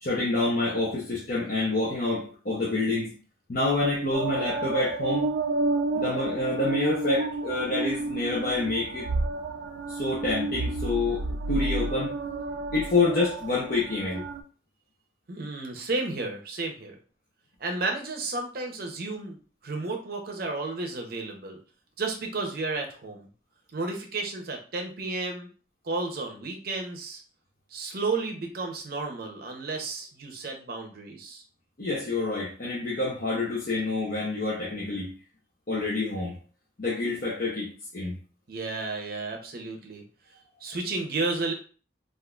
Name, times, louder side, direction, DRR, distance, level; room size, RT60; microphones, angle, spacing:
voice 1, 0.0-3.2 3.5-5.3 5.9-9.1 9.9-12.1 12.7-14.2 31.8-35.1 35.7-36.3 36.8-38.1, left 2 dB, 55° left, -5 dB, 0.8 m, -27 dB
sound 1, 4.1-14.4, right 2 dB, 90° right, 0.4 m, -31 dB
voice 2, 15.3-17.0 17.6-21.6 22.0-23.3 23.7-25.5 25.8-27.2 27.7-31.4 38.5-40.0 40.6-41.5, right 3 dB, 55° right, 2 dB, 0.7 m, -32 dB
3.8 x 2.5 x 2.3 m, 0.39 s
head